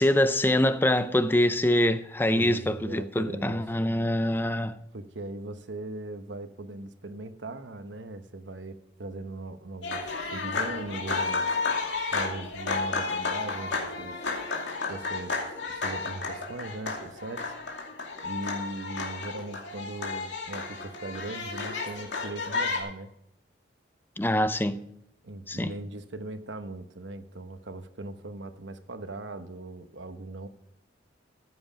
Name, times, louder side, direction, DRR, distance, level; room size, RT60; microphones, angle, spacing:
voice 1, 0.0-4.8 24.2-24.8 25.5-25.7, left 1 dB, 10° left, 0.5 m, -24 dB
voice 2, 2.3-3.6 4.9-10.0 10.3-11.4 12.1-14.2 14.9-15.4 15.8-17.4 18.2-23.1 25.2-30.5, right 2 dB, 85° right, 1.0 m, -39 dB
sound 1, 9.8-22.8, left 4 dB, 85° left, 2.5 m, -32 dB
14.5 x 7.9 x 5.1 m
head